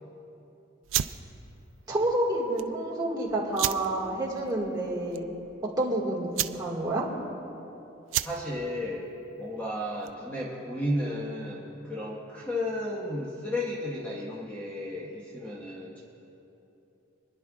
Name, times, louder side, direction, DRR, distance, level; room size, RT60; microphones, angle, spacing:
sound 1, 0.8-10.4, right 13 dB, 85° right, 0.3 m, -35 dB
voice 1, 1.9-5.2 5.8-7.1, right 1 dB, 20° right, -4 dB, 1.9 m, -29 dB
voice 2, 8.2-9.1 9.4-16.0, left 1 dB, 10° left, -6 dB, 1.3 m, -33 dB
29.0 x 10.5 x 2.4 m, 3.0 s
head